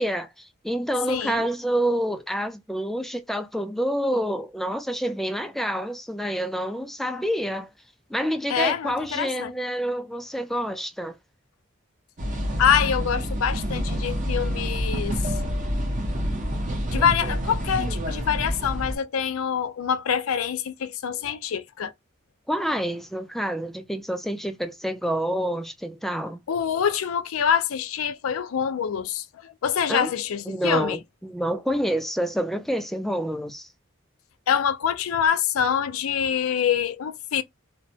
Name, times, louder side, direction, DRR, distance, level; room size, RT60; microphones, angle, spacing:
voice 1, 0.0-7.7 8.1-11.2 22.5-26.4 29.9-30.1 30.5-33.7, equal, ahead, 0.3 m, -28 dB
voice 2, 1.1-1.5 8.5-9.5 12.6-15.3 16.9-21.9 26.5-31.0 34.5-37.4, left 8 dB, 85° left, 0.4 m, -25 dB
sound 1, 12.2-19.0, equal, 40° right, 0.7 m, -27 dB
2.8 x 2.1 x 2.7 m
head